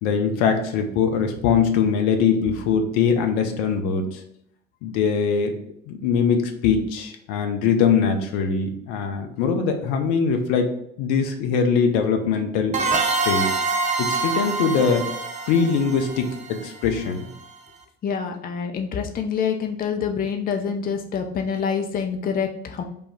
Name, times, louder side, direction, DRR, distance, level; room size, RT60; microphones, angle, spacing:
voice 1, 0.0-4.2 4.8-5.5 5.9-10.7 11.0-12.8 13.2-13.5 14.0-15.0 15.5-17.3, left 6 dB, 65° left, 4 dB, 0.7 m, -22 dB
sound 1, 12.7-17.2, right 3 dB, 25° right, 0.7 m, -25 dB
voice 2, 18.0-22.8, left 6 dB, 30° left, 4 dB, 0.6 m, -26 dB
5.2 x 2.3 x 4.4 m, 0.72 s
figure-of-eight pair, 55°, 31 cm